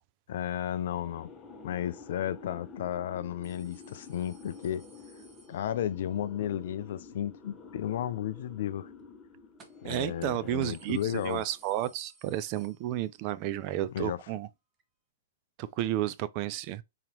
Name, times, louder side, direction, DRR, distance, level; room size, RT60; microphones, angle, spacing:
voice 1, 0.3-1.3 1.6-4.9 5.5-8.9 9.8-11.4 13.9-14.2, left 11 dB, 60° left, 0.3 m, -33 dB
sound 1, 0.6-11.8, left 4 dB, 20° left, 0.9 m, -50 dB
sound 2, 3.4-6.1 9.6-10.0 10.3-10.4 10.6-13.3 13.7-13.8 14.8-14.9, right 3 dB, 25° right, 0.9 m, -60 dB
voice 2, 9.8-14.5 15.6-16.8, right 13 dB, 40° right, 0.3 m, -32 dB
4.0 x 2.9 x 2.9 m
hypercardioid pair, 130°, 0 cm